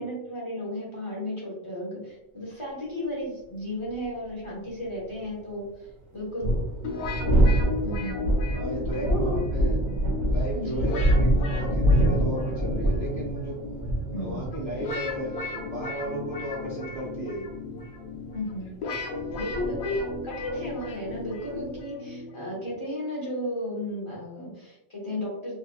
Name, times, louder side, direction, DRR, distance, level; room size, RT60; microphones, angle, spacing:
voice 1, 0.0-5.7 6.1-6.5 7.8-8.2 8.9-9.5 10.5-10.8 14.1-14.4 18.3-18.7 19.4-25.6, left 1 dB, 25° left, -5 dB, 0.7 m, -33 dB
sound 1, 4.0-4.1 6.2-21.8, right 1 dB, 60° right, 0.9 m, -26 dB
sound 2, 6.8-22.8, left 3 dB, 85° left, 1.1 m, -36 dB
voice 2, 8.5-9.8 10.2-13.6 14.1-17.5 19.9-20.0, right 1 dB, 45° right, -7 dB, 0.5 m, -35 dB
2.8 x 2.4 x 2.3 m, 0.88 s
omnidirectional pair, 1.4 m